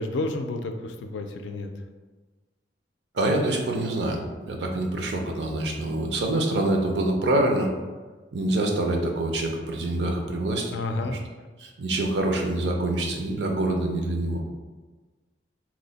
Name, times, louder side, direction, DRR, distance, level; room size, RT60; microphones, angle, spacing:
voice 1, 0.0-1.7 10.7-11.2, left 2 dB, 90° left, 6 dB, 0.4 m, -30 dB
voice 2, 3.1-7.7 8.3-11.1 11.6-14.4, right 1 dB, 70° right, 2 dB, 0.5 m, -26 dB
3.0 x 2.0 x 3.9 m, 1.3 s
head